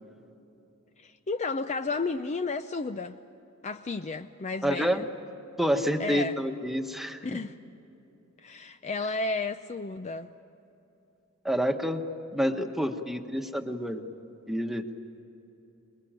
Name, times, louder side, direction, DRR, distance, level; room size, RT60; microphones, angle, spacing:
voice 1, 1.0-3.2 3.6-5.0 6.0-6.3 7.2-7.5 8.4-10.3, left 3 dB, 35° left, 0.5 m, -32 dB
voice 2, 4.6-5.1 5.6-7.4 11.4-12.0 12.3-14.0 14.5-14.8, equal, ahead, 1.3 m, -28 dB
26.0 x 21.5 x 8.9 m
head